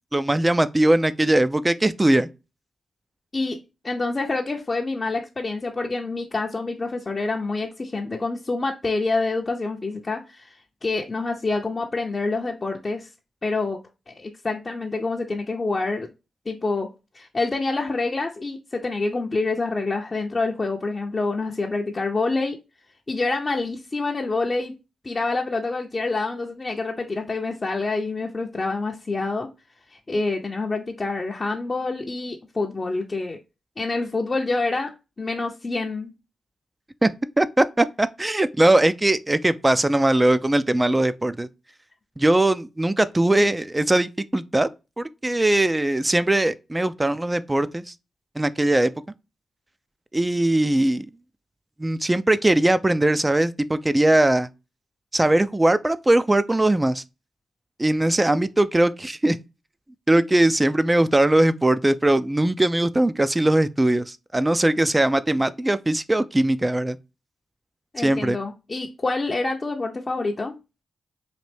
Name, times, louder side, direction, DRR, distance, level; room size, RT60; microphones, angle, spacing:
voice 1, 0.1-2.3 37.0-37.1 37.4-41.5 42.2-44.7 45.0-47.8 48.4-48.9 50.1-51.1 51.8-54.5 55.1-57.0 57.8-59.4 60.1-67.0 68.0-68.4, right 1 dB, 20° right, 0.4 m, -20 dB
voice 2, 3.8-10.6 10.8-13.1 13.4-13.8 14.1-16.1 16.5-16.9 17.1-22.6 23.1-24.7 25.0-29.5 29.9-33.4 33.8-34.9 35.2-36.1 67.9-70.5, left 3 dB, 40° left, 0.6 m, -27 dB
4.1 x 2.5 x 3.2 m
supercardioid pair, 40°, 0 cm